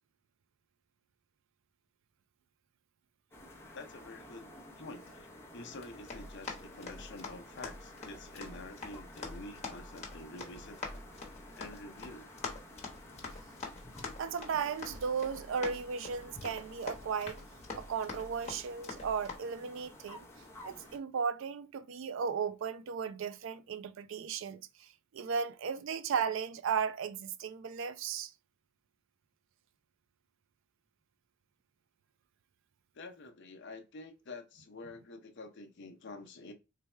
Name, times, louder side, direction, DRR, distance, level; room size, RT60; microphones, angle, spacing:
sound 1, 3.3-21.0, left 1 dB, 10° left, 0.7 m, -52 dB
voice 1, 3.7-4.5 4.8-5.3 5.5-10.8 11.6-12.4 32.9-36.5, left 2 dB, 60° left, 0.6 m, -48 dB
Run, 5.7-19.4, left 3 dB, 35° left, 1.0 m, -46 dB
voice 2, 14.2-17.4 17.7-20.3 20.6-28.3, right 6 dB, 65° right, 0.4 m, -35 dB
3.3 x 2.2 x 4.2 m
head